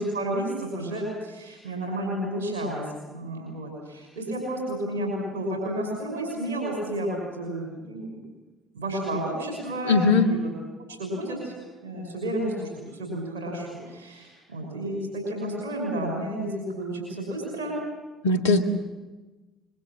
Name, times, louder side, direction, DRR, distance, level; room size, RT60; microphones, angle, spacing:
voice 1, 0.0-2.8 3.1-8.2 8.7-10.5 11.0-17.8, right 1 dB, 85° right, 0 dB, 5.9 m, -31 dB
voice 2, 9.9-10.3 18.2-18.6, left 3 dB, 85° left, 6 dB, 1.8 m, -19 dB
26.0 x 22.0 x 7.4 m, 1.2 s
hypercardioid pair, 55°, 0 cm